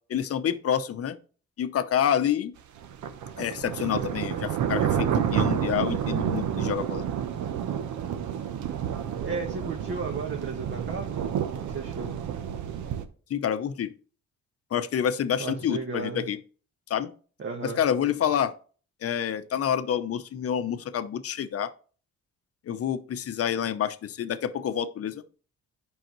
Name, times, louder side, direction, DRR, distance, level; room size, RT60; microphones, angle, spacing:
voice 1, 0.1-1.2 1.6-2.5 3.4-7.0 13.3-13.9 14.7-16.4 16.9-17.1 17.6-18.6 19.0-21.7 22.7-25.2, left 9 dB, 50° left, 0.7 m, -28 dB
sound 1, 2.8-13.1, right 9 dB, 75° right, 0.8 m, -29 dB
voice 2, 9.2-12.1 15.4-16.3 17.4-17.8, right 4 dB, 40° right, 1.2 m, -34 dB
9.0 x 5.6 x 3.1 m
cardioid pair, 90°, 30 cm